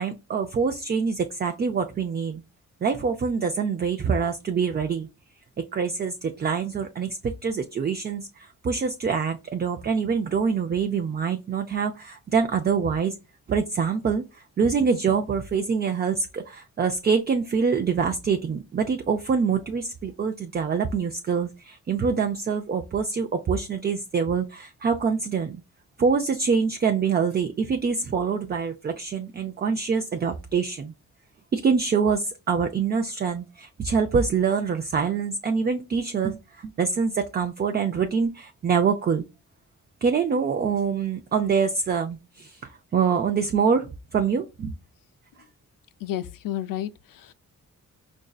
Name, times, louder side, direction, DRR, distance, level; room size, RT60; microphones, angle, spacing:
voice 1, 0.0-2.4 2.8-5.1 5.7-13.2 13.5-14.2 14.6-25.6 26.0-30.9 31.5-39.2 40.0-44.7, right 5 dB, 30° right, 0.4 m, -25 dB
voice 2, 46.0-47.3, left 12 dB, 85° left, 0.5 m, -31 dB
4.9 x 2.6 x 2.3 m
cardioid pair, 110°, 32 cm